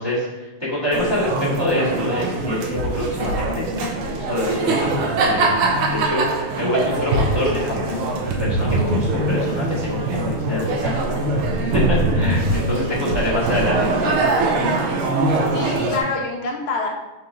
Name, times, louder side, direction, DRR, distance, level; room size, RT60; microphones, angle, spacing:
voice 1, 0.0-3.7 4.0-5.5 5.9-11.3 11.6-14.5, left 1 dB, 15° right, -7 dB, 1.5 m, -26 dB
sound 1, 0.9-16.0, right 2 dB, 90° right, 1.8 m, -22 dB
voice 2, 12.7-13.1 13.5-13.6 15.5-16.9, left 3 dB, 75° left, 0 dB, 1.6 m, -27 dB
4.5 x 4.1 x 5.2 m, 1.1 s
omnidirectional pair, 2.4 m